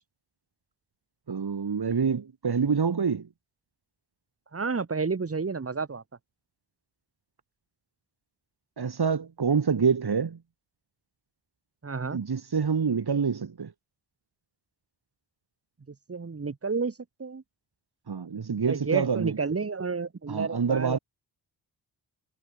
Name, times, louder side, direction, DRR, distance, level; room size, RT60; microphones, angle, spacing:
voice 1, 1.3-3.3 8.8-10.4 12.1-13.7 18.1-19.4 20.3-21.0, right 6 dB, 55° right, 5.7 m, -26 dB
voice 2, 4.5-6.0 11.8-12.2 15.9-17.4 18.7-21.0, right 4 dB, 30° right, 1.9 m, -31 dB
supercardioid pair, 40°, 46 cm